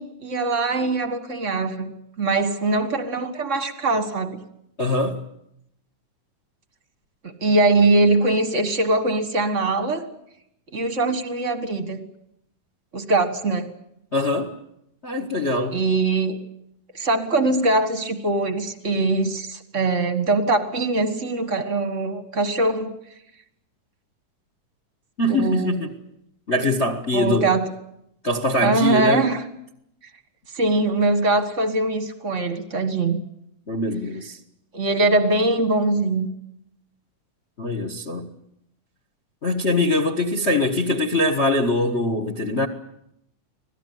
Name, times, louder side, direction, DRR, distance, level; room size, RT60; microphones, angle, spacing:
voice 1, 0.0-4.4 7.4-10.0 10.7-12.0 12.9-13.7 15.7-16.4 16.9-22.9 25.3-25.8 27.1-27.7 28.6-29.5 30.5-33.2 34.7-36.3, right 2 dB, 40° right, 1.1 m, -22 dB
voice 2, 4.8-5.2 14.1-14.5 15.0-15.8 25.2-25.9 26.5-27.5 28.2-29.3 33.7-34.4 37.6-38.3 39.4-42.7, left 2 dB, 45° left, 0.8 m, -23 dB
26.0 x 17.5 x 9.3 m
omnidirectional pair, 3.8 m